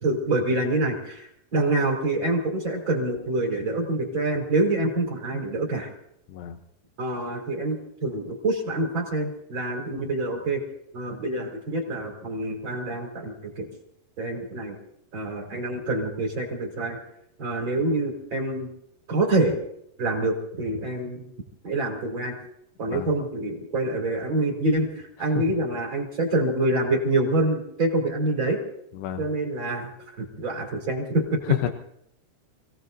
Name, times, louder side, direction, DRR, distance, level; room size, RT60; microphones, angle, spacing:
voice 1, 0.0-5.9 7.0-10.6 10.9-13.7 14.2-14.8 15.1-17.0 17.4-18.7 19.1-19.5 20.0-21.2 21.6-22.4 22.8-28.6 29.2-31.4, right 2 dB, 30° right, 0 dB, 3.7 m, -26 dB
voice 2, 28.9-29.3 31.4-31.7, left 12 dB, 80° left, 5 dB, 2.9 m, -29 dB
29.5 x 17.5 x 2.7 m, 0.73 s
omnidirectional pair, 4.9 m